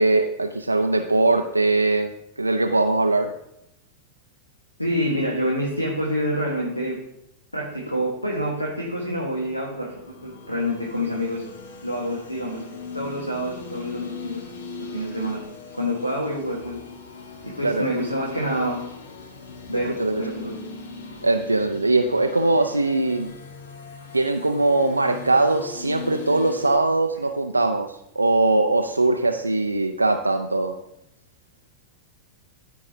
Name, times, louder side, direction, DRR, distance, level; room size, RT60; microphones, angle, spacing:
voice 1, 0.0-2.1 2.4-3.3 17.6-17.9 20.0-20.3 21.2-23.3 24.1-27.9 28.2-30.8, right 2 dB, 80° right, 5 dB, 0.4 m, -21 dB
voice 2, 4.8-7.0 7.5-11.5 11.8-12.6 12.9-14.5 14.8-15.4 15.7-16.8 17.4-18.8 19.7-20.6, equal, 85° left, -2 dB, 1.3 m, -27 dB
sound 1, 9.9-26.8, left 4 dB, 60° left, 1.0 m, -39 dB
13.5 x 4.7 x 2.7 m, 0.80 s
figure-of-eight pair, 90°, 0 cm